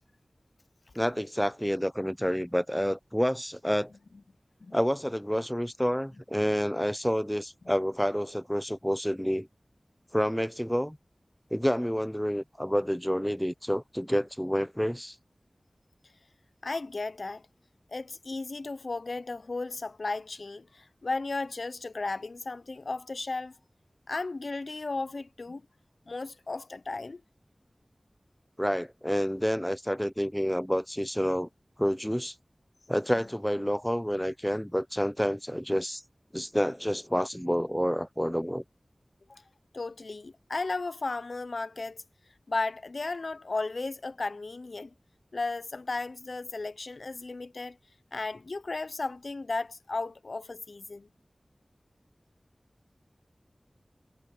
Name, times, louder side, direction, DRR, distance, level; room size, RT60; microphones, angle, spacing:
voice 1, 1.0-3.9 4.7-9.5 10.1-11.0 11.5-15.1 28.6-31.5 31.8-32.3 32.9-36.0 36.3-38.6, equal, 5° left, 0.6 m, -29 dB
voice 2, 16.6-17.4 17.9-23.5 24.1-25.6 26.1-27.2 39.3-39.4 39.7-42.0 42.5-44.9 45.3-47.8 48.1-51.1, left 3 dB, 75° left, 0.6 m, -35 dB
wide cardioid pair, 60°, 0 cm